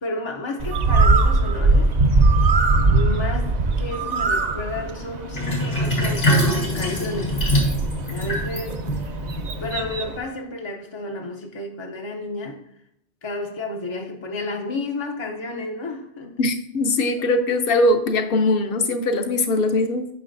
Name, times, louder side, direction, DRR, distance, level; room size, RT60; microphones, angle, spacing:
voice 1, 0.0-1.9 2.8-7.4 8.0-9.2 9.6-12.6 13.2-16.4, left 2 dB, 35° left, 0 dB, 0.5 m, -32 dB
Bird, 0.6-10.2, right 3 dB, 50° right, 0.6 m, -21 dB
Sink (filling or washing), 5.3-10.1, equal, 85° left, 3.3 m, -24 dB
voice 2, 16.4-20.1, left 2 dB, 60° left, 7 dB, 0.9 m, -21 dB
9.2 x 5.7 x 2.6 m, 0.77 s
omnidirectional pair, 1.1 m